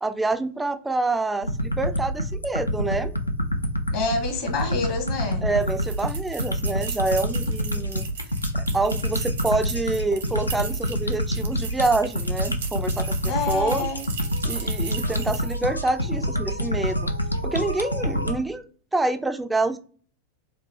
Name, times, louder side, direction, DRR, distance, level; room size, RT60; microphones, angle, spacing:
voice 1, 0.0-3.2 5.4-8.1 8.5-13.9 14.4-17.1 17.4-18.6 18.9-19.8, right 2 dB, 10° right, 10 dB, 0.3 m, -27 dB
sound 1, 1.4-18.4, equal, 85° left, 0.4 m, -27 dB
voice 2, 3.9-5.4 13.2-14.1, left 4 dB, 50° left, 4 dB, 1.0 m, -27 dB
sound 2, 5.6-15.7, right 6 dB, 65° right, 0.7 m, -38 dB
4.7 x 2.0 x 2.7 m, 0.41 s
figure-of-eight pair, 90°, 0 cm